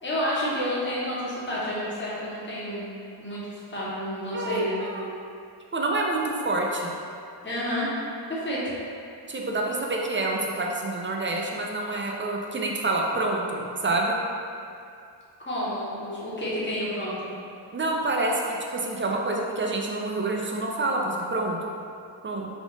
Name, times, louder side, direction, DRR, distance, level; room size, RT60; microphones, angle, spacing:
voice 1, 0.0-2.9 3.2-4.8 7.4-7.9 8.3-8.6 15.4-17.3, left 1 dB, 25° left, -8 dB, 1.0 m, -30 dB
voice 2, 4.3-5.2 5.7-6.9 9.3-14.2 17.7-21.6 22.2-22.5, right 2 dB, 25° right, -1 dB, 0.4 m, -27 dB
3.5 x 2.4 x 3.8 m, 2.5 s
wide cardioid pair, 75°, 46 cm